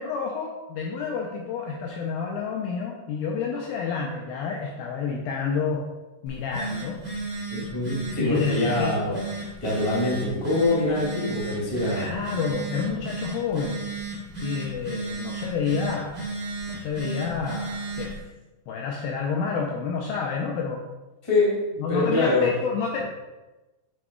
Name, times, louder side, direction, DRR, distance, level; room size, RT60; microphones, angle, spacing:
voice 1, 0.0-5.8 6.2-7.0 8.2-9.0 11.9-13.8 14.4-16.1 16.7-18.2 18.7-20.8 21.8-23.0, left 5 dB, 80° left, 0 dB, 2.2 m, -29 dB
Telephone, 6.2-18.2, right 3 dB, 30° right, 0.9 m, -34 dB
voice 2, 7.5-12.2 21.2-21.6 21.9-22.5, left 2 dB, 15° left, -6 dB, 1.2 m, -24 dB
9.2 x 6.1 x 2.3 m, 1.1 s
omnidirectional pair, 4.7 m